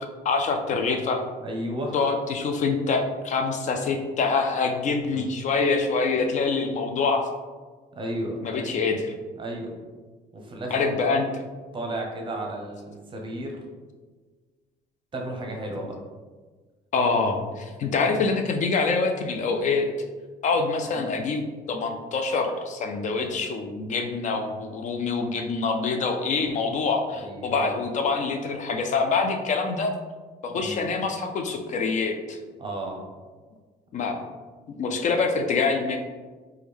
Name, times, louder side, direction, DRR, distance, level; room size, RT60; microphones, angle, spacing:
voice 1, 0.2-1.2 1.9-7.3 8.4-9.1 10.7-11.3 16.9-19.9 20.4-29.9 30.4-32.4 33.9-34.2 34.7-36.0, left 4 dB, 45° left, 4 dB, 0.4 m, -25 dB
voice 2, 1.4-1.9 5.1-5.3 8.0-8.7 9.4-9.8 10.3-10.9 11.7-13.6 15.1-16.0 20.9-21.1 27.1-27.7 30.5-30.9 32.6-33.0 34.0-34.2, right 1 dB, 30° right, 1 dB, 0.6 m, -33 dB
3.0 x 2.2 x 3.5 m, 1.4 s
cardioid pair, 110°, 17 cm